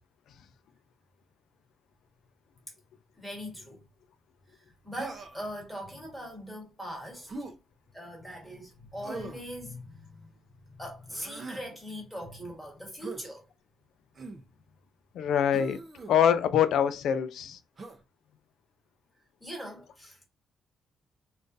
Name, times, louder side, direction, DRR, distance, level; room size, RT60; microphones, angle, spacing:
voice 1, 3.2-3.8 4.6-7.3 7.9-10.3 10.8-13.4 19.4-20.2, equal, ahead, 1.3 m, -41 dB
Human voice, 5.0-5.5 7.3-7.5 9.0-9.5 11.1-11.7 13.0-13.2 14.1-14.4 15.5-16.1 17.8-18.0, right 3 dB, 25° right, 0.6 m, -41 dB
voice 2, 15.1-15.8 16.1-17.6, left 9 dB, 70° left, 0.4 m, -24 dB
3.7 x 2.4 x 2.6 m
cardioid pair, 165°, 0 cm